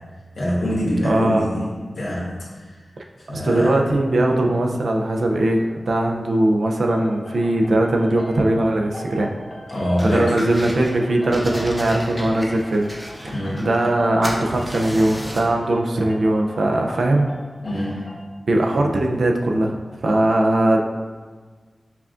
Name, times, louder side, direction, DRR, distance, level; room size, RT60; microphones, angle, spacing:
voice 1, 0.4-2.3 3.3-3.7 4.4-4.5 9.7-10.4 13.3-13.7 17.6-18.0, left 1 dB, 85° left, -7 dB, 1.0 m, -24 dB
voice 2, 1.0-1.5 3.3-9.3 10.0-12.9 13.2-17.3 18.5-20.8, right 1 dB, 85° right, 1 dB, 0.4 m, -20 dB
sound 1, 6.9-18.2, left 1 dB, 40° left, 0.6 m, -40 dB
sound 2, 10.0-10.9 11.3-14.0 14.2-15.5, equal, 5° left, 0.7 m, -34 dB
5.6 x 2.4 x 2.4 m, 1.5 s
wide cardioid pair, 60°, 0 cm